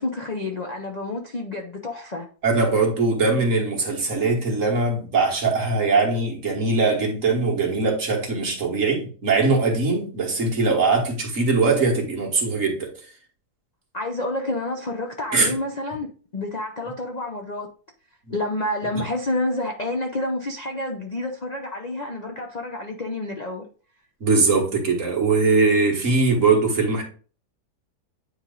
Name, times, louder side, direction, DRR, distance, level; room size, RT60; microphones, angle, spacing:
voice 1, 0.0-2.3 13.9-16.1 16.3-17.7 18.3-23.7, left 2 dB, 45° left, 0.5 m, -29 dB
voice 2, 2.4-12.9 15.3-15.5 24.2-27.0, right 3 dB, 50° right, 1.9 m, -21 dB
9.4 x 3.2 x 3.8 m
omnidirectional pair, 1.8 m